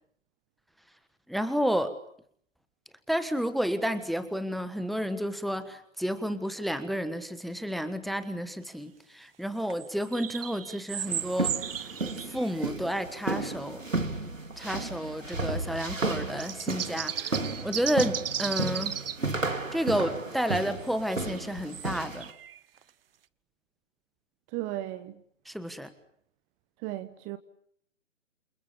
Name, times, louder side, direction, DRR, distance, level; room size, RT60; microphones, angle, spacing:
voice 1, 1.3-1.9 3.1-11.7 12.3-13.8 14.6-19.0 19.7-22.3 25.4-25.9, equal, ahead, 1.4 m, -31 dB
sound 1, 9.6-12.8 13.9-14.0 16.0-19.2 20.9-22.8, right 9 dB, 50° right, 1.1 m, -35 dB
sound 2, 11.1-22.3, right 2 dB, 85° right, 3.9 m, -33 dB
voice 2, 24.5-25.2 26.8-27.4, right 15 dB, 20° right, 1.2 m, -35 dB
28.5 x 28.5 x 7.3 m
figure-of-eight pair, 130°, 38 cm